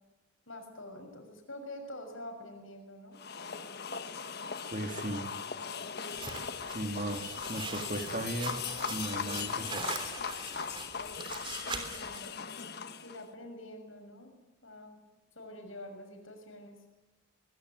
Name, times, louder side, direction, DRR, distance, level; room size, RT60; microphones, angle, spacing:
voice 1, 0.5-3.2 11.7-12.3 13.0-14.3 14.6-15.0 15.3-16.8, left 1 dB, 75° left, 5 dB, 6.6 m, -46 dB
sound 1, 3.2-13.3, left 6 dB, 50° left, 1.3 m, -39 dB
voice 2, 4.7-5.3 6.7-8.6 8.9-9.9, right 1 dB, 40° right, 5 dB, 2.6 m, -36 dB
sound 2, 6.1-12.2, right 4 dB, 25° right, 3.3 m, -42 dB
23.0 x 22.0 x 9.8 m, 1.1 s
head